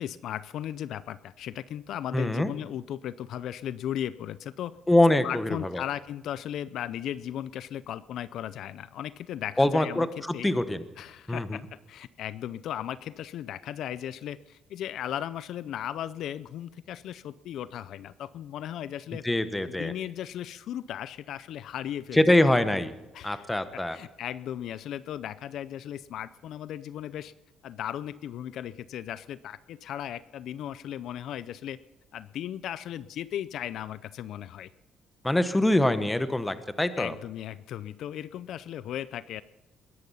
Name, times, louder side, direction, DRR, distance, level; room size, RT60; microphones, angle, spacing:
voice 1, 0.0-4.7 5.2-10.1 10.3-10.5 11.0-19.2 19.6-22.5 23.1-23.5 23.7-27.3 27.6-31.8 32.1-34.7 37.0-39.4, left 11 dB, 70° left, 16 dB, 0.5 m, -36 dB
voice 2, 2.1-2.5 4.9-5.8 9.6-10.8 11.3-11.6 19.2-19.9 22.1-22.9 23.2-24.0 35.2-37.1, left 1 dB, 10° left, 11 dB, 1.1 m, -24 dB
21.5 x 10.5 x 5.6 m, 1.0 s
cardioid pair, 110°, 0 cm